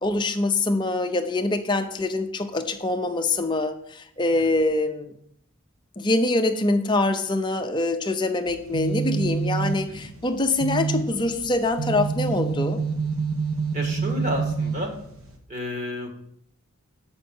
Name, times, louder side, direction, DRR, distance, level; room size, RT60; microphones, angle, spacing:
voice 1, 0.0-5.1 6.0-12.8, left 2 dB, 20° left, 5 dB, 0.6 m, -24 dB
sound 1, 8.5-15.4, right 5 dB, 75° right, 1.2 m, -28 dB
voice 2, 13.7-14.9 15.5-16.1, left 1 dB, 35° right, 2 dB, 1.6 m, -31 dB
8.0 x 5.3 x 5.5 m, 0.70 s
head